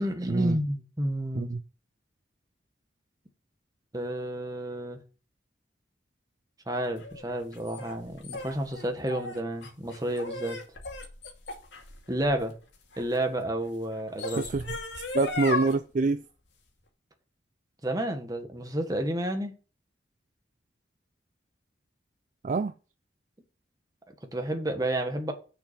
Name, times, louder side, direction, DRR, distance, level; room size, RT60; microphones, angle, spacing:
voice 1, 0.0-1.5 3.9-5.0 6.7-10.6 12.1-12.5 13.0-14.5 17.8-19.5 24.1-25.3, right 1 dB, 20° right, 1.5 m, -30 dB
sound 1, 7.0-13.2 13.9-15.7, left 3 dB, 85° left, 2.4 m, -36 dB
voice 2, 15.1-16.2 22.4-22.7, right 3 dB, 45° right, 0.4 m, -26 dB
6.8 x 5.9 x 7.4 m
head